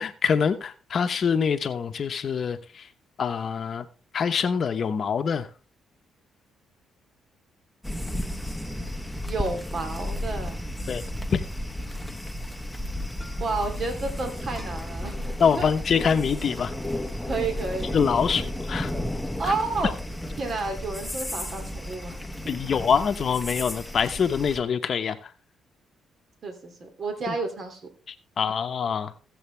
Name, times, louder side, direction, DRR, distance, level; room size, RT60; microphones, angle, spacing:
voice 1, 0.0-2.6 3.2-3.8 4.1-5.5 10.9-11.0 11.3-11.4 15.4-16.7 17.9-18.9 22.5-25.2 28.4-29.1, left 6 dB, 50° left, 0.9 m, -24 dB
sound 1, 7.8-24.6, left 1 dB, ahead, 1.1 m, -33 dB
voice 2, 9.2-10.6 13.4-15.7 17.3-17.9 19.4-19.9 20.4-22.2 26.4-27.8, right 3 dB, 50° right, 2.7 m, -31 dB
15.5 x 7.9 x 3.3 m
cardioid pair, 90°, 0 cm